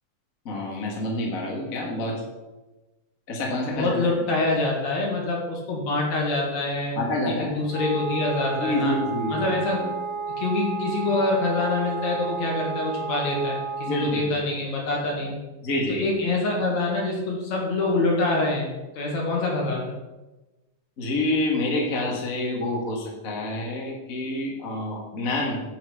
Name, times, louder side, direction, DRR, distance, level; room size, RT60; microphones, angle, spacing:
voice 1, 0.4-2.2 3.3-4.1 6.9-7.6 8.6-9.4 13.9-14.4 15.6-16.0 21.0-25.6, left 1 dB, 35° left, -1 dB, 1.5 m, -27 dB
voice 2, 3.7-7.0 7.3-9.0 9.3-9.9 10.4-15.3 15.9-20.0, left 2 dB, 60° left, -1 dB, 2.7 m, -25 dB
Wind instrument woodwind instrument, 7.7-14.3, right 5 dB, 65° right, 1.9 m, -32 dB
8.2 x 7.5 x 5.0 m, 1.1 s
omnidirectional pair, 3.9 m